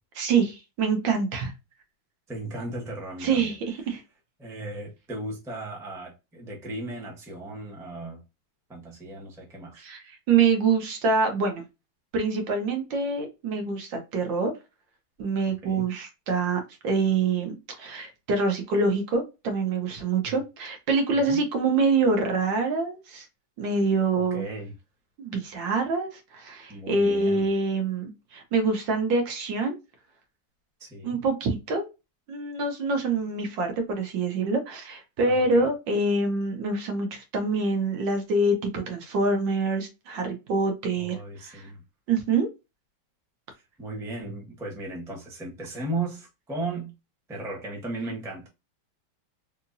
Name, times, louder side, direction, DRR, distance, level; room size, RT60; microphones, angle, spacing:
voice 1, 0.2-1.5 3.2-4.0 9.7-11.6 12.1-14.5 15.2-23.3 23.6-24.4 25.2-29.8 31.0-31.9 32.3-41.2 41.4-41.7 42.1-42.5, right 3 dB, 70° right, 1.5 m, -25 dB
voice 2, 2.3-3.6 3.8-3.9 4.4-8.2 8.7-9.8 15.4-15.9 20.2-20.3 21.2-21.4 24.3-24.7 26.7-27.5 30.8-31.2 35.3-35.7 40.9-41.8 43.8-46.9 47.3-48.5, right 2 dB, 5° right, 0.6 m, -36 dB
3.6 x 2.9 x 2.6 m
omnidirectional pair, 2.1 m